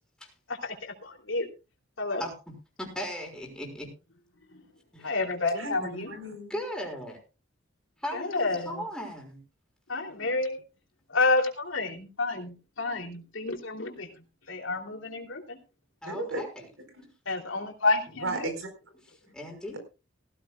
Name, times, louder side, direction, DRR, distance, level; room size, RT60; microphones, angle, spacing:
voice 1, 0.5-1.5 2.0-2.2 4.5-4.6 5.0-6.1 8.1-8.7 9.9-10.6 11.1-14.1 14.5-15.6 17.3-18.5, left 3 dB, 80° left, 3 dB, 3.1 m, -29 dB
voice 2, 2.8-3.9 4.9-5.2 6.5-7.2 8.0-9.4 16.0-16.5 19.3-19.8, equal, 5° left, 1 dB, 5.8 m, -37 dB
voice 3, 5.6-6.6 16.1-16.4 16.8-17.1 18.2-18.7, right 2 dB, 85° right, 7 dB, 4.6 m, -35 dB
18.0 x 15.5 x 2.4 m, 0.31 s
head